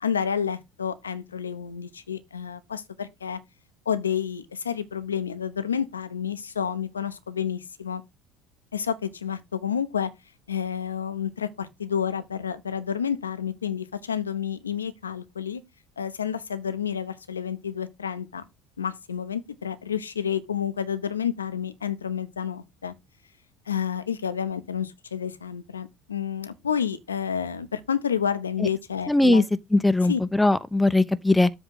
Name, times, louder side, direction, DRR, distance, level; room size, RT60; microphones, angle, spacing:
voice 1, 0.0-3.4 3.9-8.0 8.7-10.1 10.5-15.6 16.0-18.4 18.8-22.9 23.7-29.5 30.1-30.2, left 8 dB, 90° left, 0.9 m, -30 dB
voice 2, 29.1-29.4 29.7-31.5, left 2 dB, 5° left, 0.8 m, -20 dB
7.9 x 3.6 x 6.3 m
hypercardioid pair, 65°, 0 cm